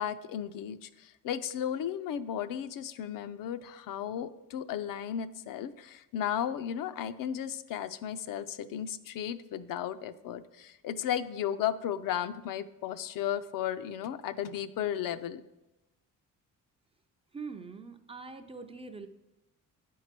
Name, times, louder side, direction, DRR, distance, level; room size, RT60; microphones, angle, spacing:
voice 1, 0.0-15.4, left 10 dB, 75° left, 12 dB, 0.5 m, -34 dB
voice 2, 17.3-19.1, right 4 dB, 20° right, 7 dB, 0.3 m, -43 dB
8.6 x 4.7 x 5.9 m, 0.97 s
cardioid pair, 155°, 33 cm